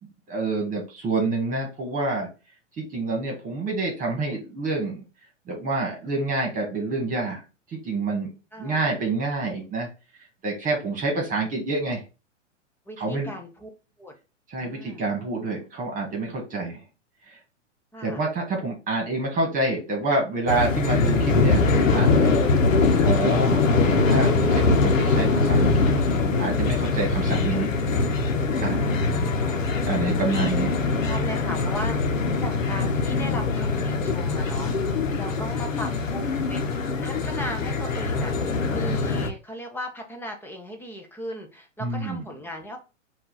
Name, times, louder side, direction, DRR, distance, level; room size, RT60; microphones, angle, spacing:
voice 1, 0.3-2.3 2.8-5.0 5.5-7.4 7.7-8.3 8.6-9.9 10.4-12.0 13.0-13.3 14.5-16.8 17.3-17.4 18.0-22.3 23.0-25.9 26.4-27.7 28.6-28.8 29.8-30.7 41.8-42.2, right 3 dB, 20° right, 0 dB, 1.7 m, -27 dB
voice 2, 8.5-8.9 12.9-13.7 14.0-14.1 14.6-15.1 17.9-18.2 28.7-29.7 30.1-30.6 31.0-38.3 38.7-42.8, equal, 5° left, 3 dB, 0.7 m, -37 dB
sound 1, 20.5-39.3, left 3 dB, 85° left, 0.9 m, -22 dB
4.5 x 2.7 x 4.1 m, 0.31 s
hypercardioid pair, 125°, 38 cm